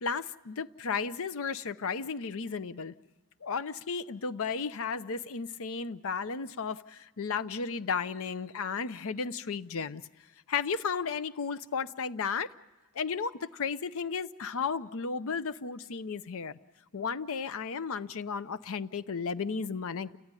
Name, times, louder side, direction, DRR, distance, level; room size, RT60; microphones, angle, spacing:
voice 1, 0.0-2.9 3.4-10.0 10.5-12.5 12.9-16.6 16.9-20.2, left 5 dB, 65° left, 0.7 m, -34 dB
30.0 x 14.0 x 9.7 m
head